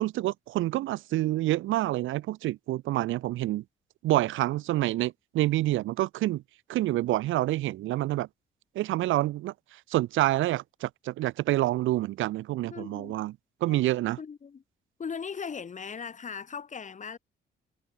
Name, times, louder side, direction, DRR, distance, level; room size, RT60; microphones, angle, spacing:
voice 1, 0.0-3.6 4.0-6.4 6.7-8.3 8.8-9.5 9.9-13.3 13.6-14.2, right 16 dB, 80° right, 0.6 m, -27 dB
voice 2, 12.7-13.1 13.7-13.8 14.2-14.6 15.0-17.2, left 6 dB, 40° left, 1.7 m, -38 dB
cardioid pair, 90°, 20 cm